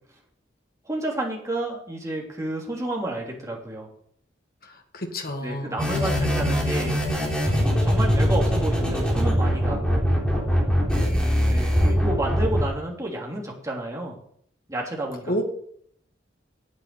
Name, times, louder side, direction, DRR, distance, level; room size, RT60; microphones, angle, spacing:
voice 1, 0.8-3.9 5.4-7.0 7.8-10.1 11.4-14.2 14.7-15.4, right 1 dB, 20° right, -1 dB, 3.0 m, -30 dB
voice 2, 4.9-6.5 11.0-11.3 15.3-15.4, equal, 55° left, 3 dB, 1.8 m, -31 dB
sound 1, 5.8-12.6, equal, 5° left, 3.4 m, -22 dB
9.2 x 8.6 x 8.3 m, 0.66 s
head